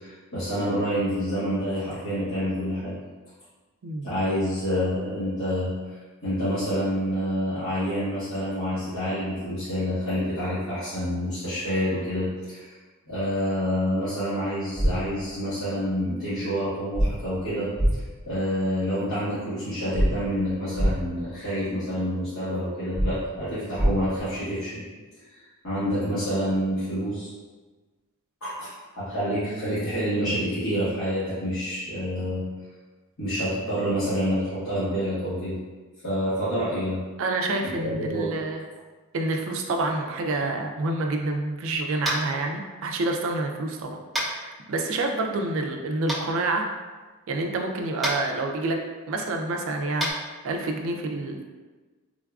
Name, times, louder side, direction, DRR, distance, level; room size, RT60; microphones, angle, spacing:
voice 1, 0.0-3.0 4.0-5.7 6.2-12.7 13.1-24.8 25.1-27.3 28.4-32.5 33.2-35.6 36.0-37.0 37.7-38.3, equal, 70° left, -15 dB, 1.3 m, -28 dB
voice 2, 3.8-4.1 32.2-32.3 37.2-38.6 39.1-44.0 44.2-46.7 47.3-48.8 49.1-50.1 50.4-51.4, right 2 dB, 65° right, 3 dB, 0.4 m, -28 dB
sound 1, 14.8-14.9 16.9-17.1 17.8-17.9 19.9-20.1 20.8-20.9 22.9-23.1 23.8-23.9, equal, 25° left, 0.9 m, -21 dB
Tap, 42.0-42.3 44.1-44.3 46.1-46.2 48.0-48.2 50.0-50.1, equal, ahead, 0.6 m, -27 dB
3.7 x 2.4 x 2.3 m, 1.3 s
head